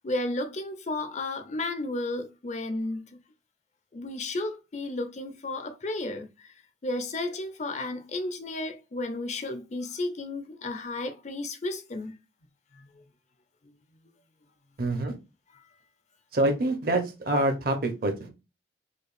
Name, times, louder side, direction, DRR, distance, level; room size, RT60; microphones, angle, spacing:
voice 1, 0.0-3.2 3.9-6.5 6.8-12.2 12.7-13.0 13.6-13.7, left 2 dB, 40° left, 0.5 m, -33 dB
voice 2, 14.8-15.1 16.3-18.3, right 1 dB, 55° right, 0.8 m, -26 dB
5.1 x 2.2 x 2.5 m
head